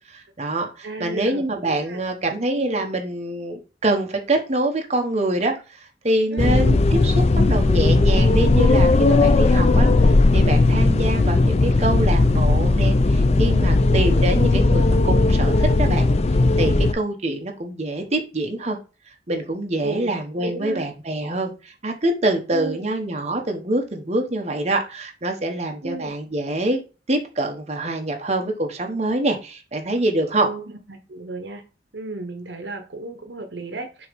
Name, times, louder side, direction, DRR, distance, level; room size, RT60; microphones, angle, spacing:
voice 1, 0.1-16.1 16.6-18.8 19.3-26.8 27.1-30.5, right 1 dB, 40° right, 4 dB, 1.1 m, -25 dB
voice 2, 0.8-2.0 2.5-2.9 6.3-6.5 19.8-20.9 22.5-22.8 25.8-26.1 30.4-30.6 30.9-31.6 31.9-34.1, right 3 dB, 75° right, 7 dB, 0.9 m, -33 dB
sound 1, 6.4-16.9, left 2 dB, 35° left, 0.4 m, -17 dB
6.8 x 3.0 x 5.2 m, 0.31 s
head